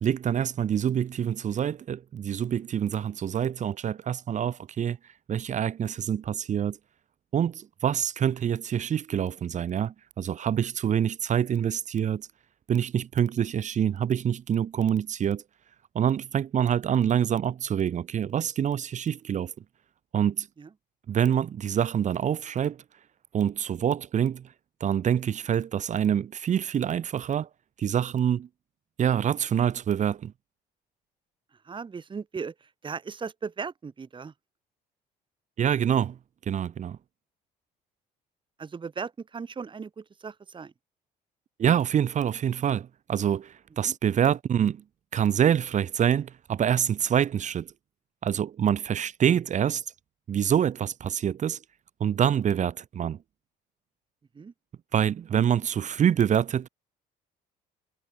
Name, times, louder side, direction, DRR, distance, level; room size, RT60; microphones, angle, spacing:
voice 1, 0.0-5.0 5.3-6.8 7.3-12.2 12.7-15.4 15.9-19.5 20.1-20.5 21.1-22.8 23.3-24.4 24.8-27.5 27.8-28.5 29.0-30.3 35.6-36.2 36.5-37.0 41.6-44.8 45.1-47.7 48.2-49.8 50.3-51.6 52.0-53.2 54.9-56.7, right 9 dB, 45° right, 1.5 m, -26 dB
voice 2, 31.6-34.3 38.6-40.7 43.8-43.9 54.3-54.5, right 5 dB, 30° right, 2.5 m, -37 dB
cardioid pair, 110°, 17 cm